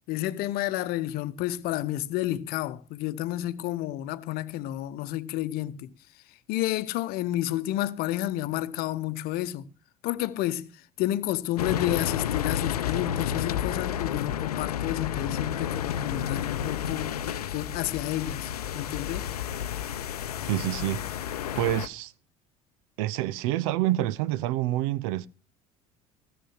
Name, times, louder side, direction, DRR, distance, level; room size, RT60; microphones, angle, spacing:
voice 1, 0.1-5.9 6.5-9.6 10.0-10.7 11.0-17.2 17.5-19.3, left 14 dB, 55° left, 0.9 m, -30 dB
sound 1, 11.6-21.9, left 9 dB, 80° left, 0.6 m, -31 dB
voice 2, 20.5-22.1 23.0-25.3, right 15 dB, 60° right, 0.7 m, -28 dB
16.5 x 7.0 x 6.2 m
figure-of-eight pair, 65°, 19 cm